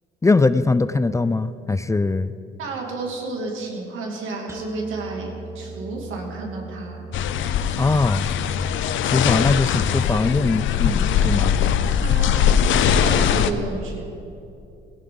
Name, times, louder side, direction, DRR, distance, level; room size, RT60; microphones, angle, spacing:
voice 1, 0.2-2.3 7.8-8.3 9.1-11.6, left 3 dB, 15° left, 13 dB, 0.4 m, -21 dB
voice 2, 2.6-7.0 12.0-12.4 12.7-14.1, right 3 dB, 85° right, 0 dB, 2.6 m, -31 dB
sound 1, 4.5-10.3, right 4 dB, 15° right, 1.5 m, -39 dB
sound 2, 7.1-13.5, left 8 dB, 75° left, 0.6 m, -21 dB
17.0 x 16.5 x 3.9 m, 2.7 s
cardioid pair, 90°, 20 cm